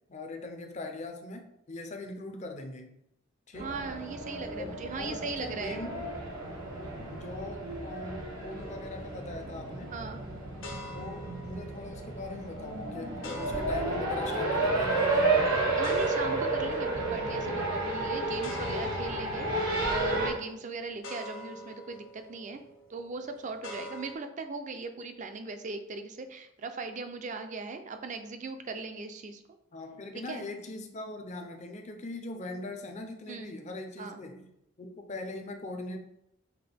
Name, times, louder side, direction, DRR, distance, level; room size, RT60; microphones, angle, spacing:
voice 1, 0.1-3.0 3.5-3.8 4.6-6.1 7.1-10.0 10.9-15.6 29.7-34.5 34.8-36.0, left 2 dB, 35° left, 4 dB, 0.5 m, -41 dB
sound 1, 3.5-20.3, right 2 dB, 75° right, 1.3 m, -31 dB
voice 2, 3.6-5.8 9.9-10.2 15.8-22.6 22.9-29.4 30.1-30.4 33.3-33.5 34.0-34.2, right 4 dB, 40° right, 7 dB, 0.4 m, -39 dB
sound 2, 8.6-24.1, left 1 dB, 65° left, 0.7 m, -47 dB
5.7 x 2.2 x 3.4 m, 0.80 s
head